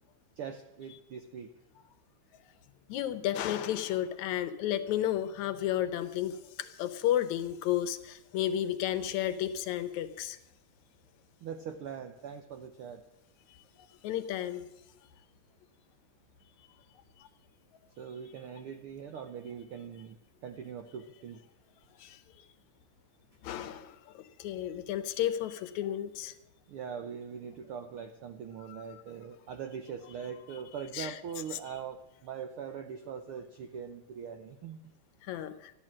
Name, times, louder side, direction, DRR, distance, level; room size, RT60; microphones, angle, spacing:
voice 1, 0.4-1.5 11.4-13.0 18.0-20.2 20.4-21.4 26.7-34.8, right 7 dB, 80° right, 7 dB, 1.2 m, -42 dB
voice 2, 2.9-10.4 14.0-14.6 22.0-22.2 23.4-26.3 30.9-31.2 35.2-35.7, left 11 dB, 75° left, 11 dB, 2.1 m, -32 dB
13.0 x 11.0 x 7.5 m, 0.88 s
omnidirectional pair, 3.5 m